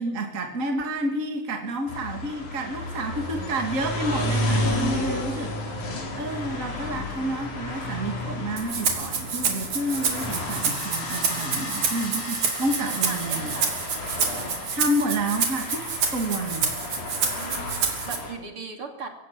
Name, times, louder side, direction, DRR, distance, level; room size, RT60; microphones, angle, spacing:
voice 1, 0.0-5.6 6.1-13.5 14.7-15.8 16.1-16.7, right 1 dB, 30° right, 3 dB, 2.7 m, -29 dB
sound 1, 1.9-18.3, left 1 dB, 90° left, 5.2 m, -32 dB
Rattle (instrument), 8.6-18.2, right 6 dB, 80° right, 4.2 m, -28 dB
sound 2, 9.7-16.6, left 2 dB, 50° left, 5.6 m, -40 dB
voice 2, 11.4-11.7 12.9-13.8 17.2-19.1, right 4 dB, 45° right, 4 dB, 3.6 m, -39 dB
23.0 x 17.0 x 8.7 m, 0.82 s
omnidirectional pair, 3.3 m